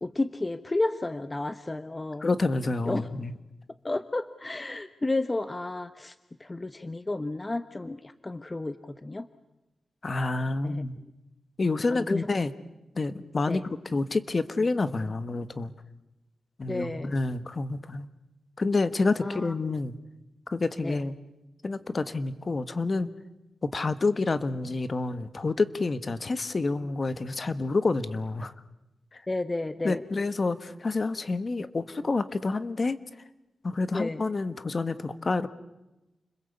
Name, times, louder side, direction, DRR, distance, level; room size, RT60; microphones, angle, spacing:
voice 1, 0.0-2.3 2.9-3.1 3.8-6.1 6.4-9.3 10.6-10.8 11.8-12.3 13.5-13.6 16.7-17.1 19.2-19.5 20.8-21.0 29.3-30.0 33.9-34.2, left 2 dB, 25° left, 11 dB, 1.0 m, -32 dB
voice 2, 2.2-3.3 10.0-10.9 11.6-12.5 12.9-15.7 16.6-18.1 18.6-19.9 20.5-21.2 21.6-23.1 23.6-28.5 29.1-29.2 29.8-33.0 33.6-35.5, left 3 dB, 45° left, 12 dB, 1.4 m, -28 dB
29.5 x 21.5 x 8.3 m, 0.98 s
cardioid pair, 70°, 0 cm